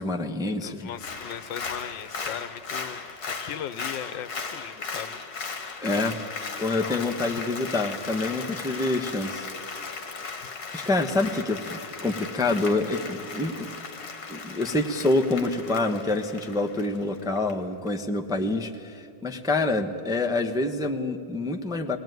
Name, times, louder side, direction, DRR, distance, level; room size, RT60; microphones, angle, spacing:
voice 1, 0.0-0.9 5.8-6.2 6.6-9.8 10.7-13.7 14.3-22.0, left 2 dB, 5° right, 5 dB, 0.7 m, -27 dB
voice 2, 0.6-5.2 6.8-7.2 10.4-10.5, left 10 dB, 85° left, 14 dB, 1.5 m, -38 dB
Applause, 0.9-17.5 17.9-18.0, left 5 dB, 60° left, 2.2 m, -37 dB
22.0 x 18.0 x 9.3 m, 2.5 s
omnidirectional pair, 2.0 m